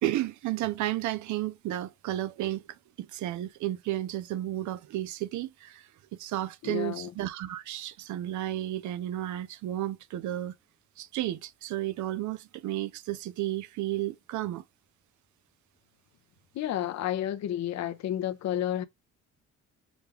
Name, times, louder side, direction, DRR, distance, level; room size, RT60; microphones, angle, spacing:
voice 1, 0.0-2.6 3.0-10.5 11.0-14.6, right 14 dB, 75° right, 0.5 m, -32 dB
voice 2, 6.6-7.1 16.5-18.8, left 11 dB, 65° left, 0.7 m, -31 dB
5.1 x 2.3 x 3.1 m
cardioid pair, 90°, 30 cm